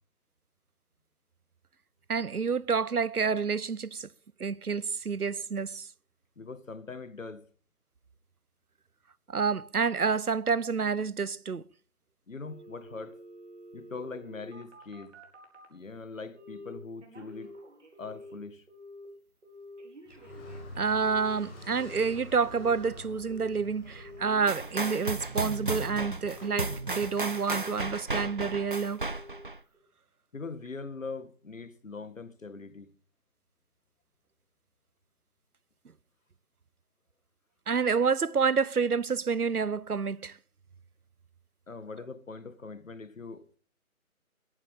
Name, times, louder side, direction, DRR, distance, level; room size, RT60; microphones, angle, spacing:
voice 1, 2.1-4.1 4.4-5.9 9.3-11.6 20.8-29.1 37.7-40.4, right 5 dB, 90° right, 0.9 m, -28 dB
voice 2, 6.4-7.5 12.3-13.2 13.7-15.2 15.7-17.5 18.0-18.7 30.3-32.9 41.7-43.6, left 4 dB, 60° left, 2.0 m, -42 dB
Telephone, 12.5-15.8 16.4-16.7 17.0-18.4 18.7-19.1 19.4-22.8 23.2-23.6 23.8-25.9 26.3-27.1 27.5-27.9 28.2-28.6 29.0-29.4 29.7-29.8, left 1 dB, 50° right, 4.9 m, -49 dB
Car, 20.0-28.3, left 1 dB, 5° left, 1.5 m, -48 dB
sound 1, 24.5-29.6, right 3 dB, 35° right, 0.7 m, -34 dB
22.0 x 11.5 x 3.7 m
figure-of-eight pair, 160°, 44 cm